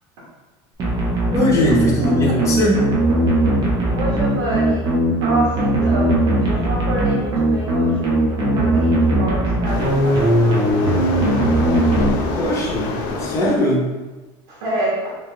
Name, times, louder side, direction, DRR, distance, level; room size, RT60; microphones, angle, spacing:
sound 1, 0.8-12.7, right 1 dB, 35° right, 0.9 m, -19 dB
voice 1, 1.3-2.8 12.4-12.9 13.2-13.9, left 1 dB, 25° left, -4 dB, 1.0 m, -19 dB
voice 2, 2.0-2.5 3.9-4.9 5.2-11.3 12.4-12.5 14.5-15.0, right 2 dB, 90° right, -7 dB, 1.3 m, -28 dB
Waves surf, 9.6-13.6, left 3 dB, 75° left, 0.6 m, -27 dB
3.6 x 2.7 x 3.3 m, 1.2 s
cardioid pair, 150°, 12 cm